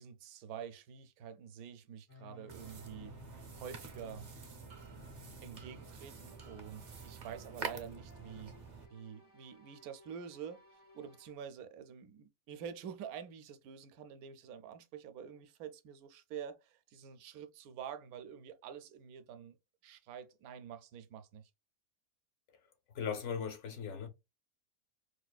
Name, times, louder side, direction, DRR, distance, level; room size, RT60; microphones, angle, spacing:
voice 1, 0.0-4.3 5.4-8.5 8.9-19.6 19.8-21.5, right 8 dB, 85° right, 1.0 m, -48 dB
sound 1, 2.1-11.3, left 3 dB, 25° left, 0.4 m, -58 dB
sound 2, 2.5-8.9, right 5 dB, 50° right, 0.5 m, -48 dB
voice 2, 22.9-24.1, left 7 dB, 65° left, 0.8 m, -38 dB
4.7 x 2.4 x 2.2 m
omnidirectional pair, 1.5 m